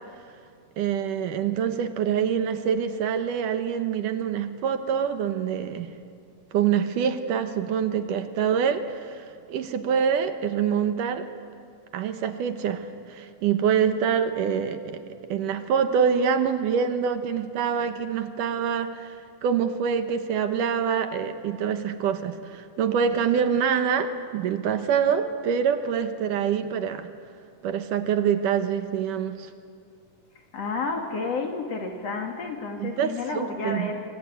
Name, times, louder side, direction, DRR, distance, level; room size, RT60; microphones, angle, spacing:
voice 1, 0.8-5.9 6.5-11.3 11.9-15.0 15.3-27.1 27.6-29.5 32.8-33.9, right 7 dB, 70° right, 9 dB, 2.6 m, -25 dB
voice 2, 30.5-34.0, left 4 dB, 50° left, 3 dB, 3.0 m, -31 dB
25.5 x 24.5 x 9.4 m, 2.3 s
omnidirectional pair, 4.0 m